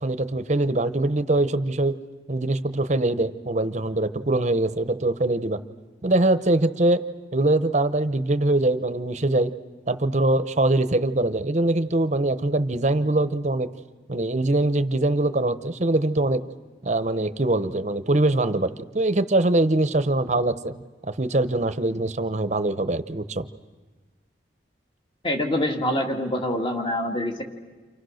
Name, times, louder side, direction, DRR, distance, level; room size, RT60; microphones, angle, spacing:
voice 1, 0.0-1.9 2.3-5.6 6.0-7.0 7.3-9.5 9.9-13.7 14.1-16.4 16.8-18.7 18.9-20.8 21.0-23.5, right 2 dB, 40° right, 11 dB, 0.9 m, -23 dB
voice 2, 25.2-27.4, left 1 dB, 25° left, 3 dB, 2.1 m, -25 dB
29.5 x 27.0 x 6.5 m, 1.3 s
head